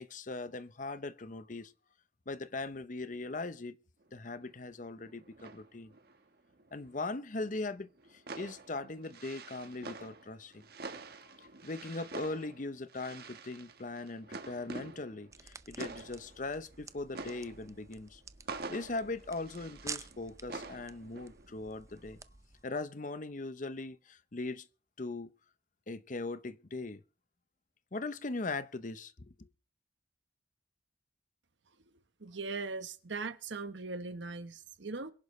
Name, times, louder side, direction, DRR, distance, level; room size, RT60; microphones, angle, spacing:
voice 1, 0.0-1.7 2.3-3.8 4.1-5.9 6.7-10.6 11.4-18.2 18.7-22.2 22.6-24.7 25.0-25.3 25.9-27.0 27.9-29.1 29.4-29.5, left 3 dB, 45° left, 0.8 m, -40 dB
sound 1, 4.0-4.1 4.3-7.0 7.3-21.6 21.9-22.2, right 3 dB, 55° right, 1.4 m, -48 dB
sound 2, 15.3-22.6, right 5 dB, 15° right, 0.5 m, -50 dB
voice 2, 32.2-35.1, right 3 dB, 80° right, 1.2 m, -39 dB
22.5 x 11.0 x 3.2 m
head